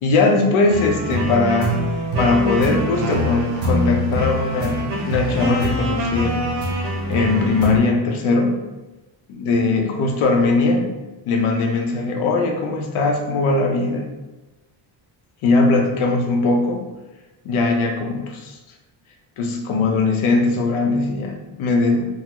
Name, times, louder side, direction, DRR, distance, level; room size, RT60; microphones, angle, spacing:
voice 1, 0.0-1.7 2.2-6.5 7.1-8.6 9.4-10.9 11.3-14.1 15.4-16.9 17.4-18.6 19.4-22.1, left 3 dB, 85° left, 2 dB, 0.7 m, -20 dB
sound 1, 0.7-7.8, equal, 75° right, 0.9 m, -24 dB
3.7 x 2.0 x 2.8 m, 1.1 s
cardioid pair, 180°, 48 cm